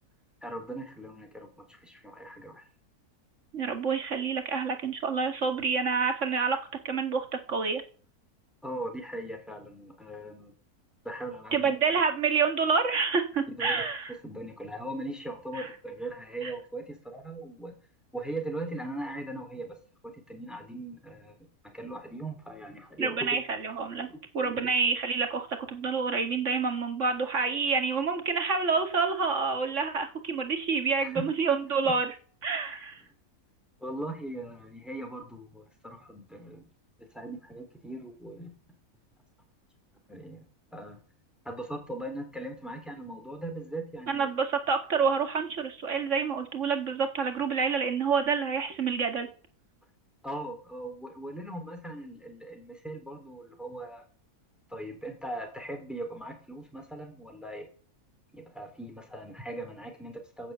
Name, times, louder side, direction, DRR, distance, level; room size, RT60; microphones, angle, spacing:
voice 1, 0.4-2.7 8.6-10.5 11.0-11.7 13.6-13.8 14.2-17.7 18.1-19.8 20.0-21.4 21.6-23.2 24.0-24.1 31.0-31.2 31.8-31.9 33.8-36.7 37.1-38.5 40.1-41.0 41.5-44.3 50.2-54.0 54.7-57.7 58.3-60.5, right 1 dB, ahead, 4 dB, 3.5 m, -39 dB
voice 2, 3.5-7.8 11.5-14.1 15.6-15.7 16.4-16.5 23.0-24.1 24.3-32.1 32.4-33.0 44.1-49.3, right 5 dB, 50° right, 5 dB, 2.2 m, -28 dB
10.5 x 9.5 x 8.2 m, 0.43 s
omnidirectional pair, 1.6 m